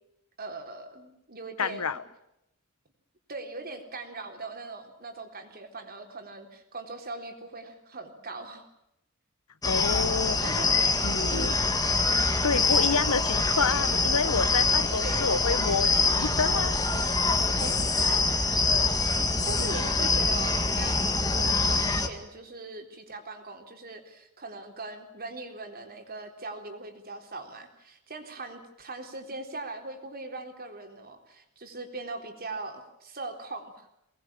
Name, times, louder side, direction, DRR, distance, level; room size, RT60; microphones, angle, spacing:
voice 1, 0.4-2.0 3.3-8.6 10.4-10.7 11.3-11.7 15.0-15.3 17.6-18.2 19.5-33.9, right 2 dB, 45° right, 5 dB, 3.9 m, -40 dB
voice 2, 1.6-2.0 9.6-10.4 11.0-11.5 12.4-16.8 19.6-19.8, left 5 dB, 90° left, 15 dB, 1.2 m, -28 dB
sound 1, 9.6-22.1, left 3 dB, 15° left, 2.1 m, -25 dB
24.0 x 20.0 x 8.9 m, 0.82 s
head